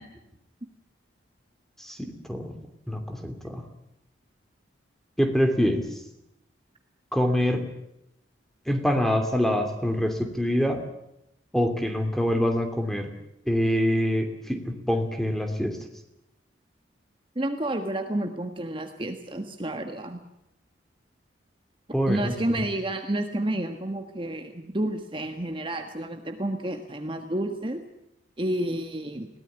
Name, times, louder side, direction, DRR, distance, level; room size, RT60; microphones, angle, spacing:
voice 1, 1.8-2.5 2.9-3.7 5.2-6.0 7.1-7.6 8.7-10.8 11.5-13.1 13.5-15.8 21.9-22.6, equal, ahead, 6 dB, 2.7 m, -25 dB
voice 2, 17.3-20.2 22.1-27.8 28.4-29.3, right 1 dB, 30° right, 6 dB, 1.5 m, -30 dB
21.5 x 17.5 x 9.9 m, 0.82 s
head